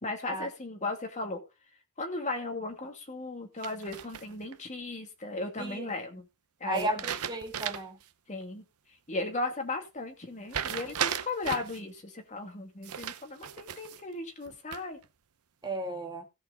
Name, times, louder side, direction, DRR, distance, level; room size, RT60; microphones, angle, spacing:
voice 1, 0.0-1.4 2.0-6.3 6.6-7.0 8.3-8.6 9.1-15.0, left 2 dB, 35° left, 2.5 m, -36 dB
sound 1, 3.6-4.5 6.7-8.0 8.4-8.5 10.5-11.8 12.8-14.0 14.4-15.0, right 8 dB, 80° right, 0.8 m, -36 dB
voice 2, 5.6-5.9 6.7-8.0 15.6-16.3, right 2 dB, 20° right, 1.9 m, -34 dB
16.5 x 6.3 x 4.0 m
head